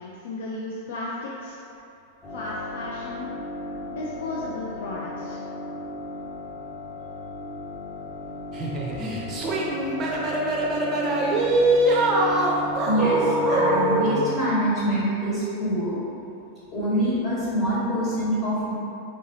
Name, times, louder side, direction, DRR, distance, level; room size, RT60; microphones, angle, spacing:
voice 1, 0.0-1.6 2.3-3.3 3.9-5.4, left 2 dB, 60° left, -4 dB, 0.4 m, -34 dB
sound 1, 2.2-14.1, equal, 5° left, 1.0 m, -35 dB
sound 2, 8.5-14.2, right 1 dB, 30° right, 0.6 m, -23 dB
voice 2, 9.0-9.5 9.7-9.8 12.8-16.0 16.7-18.7, equal, 30° left, -9 dB, 1.4 m, -25 dB
4.0 x 3.6 x 2.6 m, 2.6 s
figure-of-eight pair, 90°, 0 cm